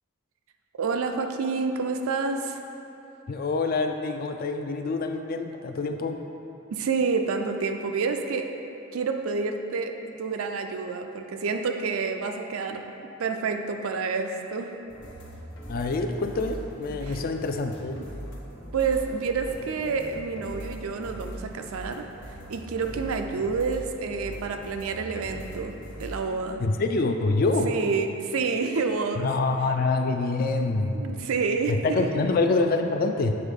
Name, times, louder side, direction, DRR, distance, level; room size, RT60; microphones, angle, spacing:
voice 1, 0.8-2.6 6.7-8.5 8.9-12.8 13.2-14.7 17.0-17.2 18.7-22.1 22.5-25.7 26.0-26.6 27.7-29.3 30.9-32.3, right 4 dB, 90° right, 5 dB, 0.4 m, -28 dB
voice 2, 3.3-6.2 15.7-18.0 26.6-27.7 29.2-31.3 31.7-33.4, left 3 dB, 45° left, 6 dB, 0.3 m, -26 dB
sound 1, 14.9-26.2, equal, 65° left, 1.0 m, -41 dB
7.8 x 3.6 x 3.6 m, 3.0 s
head